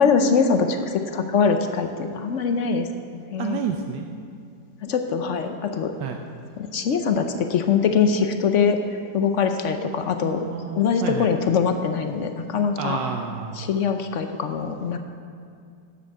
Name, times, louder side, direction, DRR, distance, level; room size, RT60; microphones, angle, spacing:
voice 1, 0.0-2.9 3.1-3.6 4.8-5.9 6.6-8.8 9.1-10.5 10.7-13.0 13.6-15.0, left 6 dB, 65° left, 7 dB, 0.7 m, -22 dB
voice 2, 3.4-4.1 6.0-6.2 9.8-11.3 12.8-13.6, right 7 dB, 80° right, 3 dB, 1.3 m, -30 dB
11.0 x 8.0 x 6.7 m, 2.3 s
omnidirectional pair, 1.9 m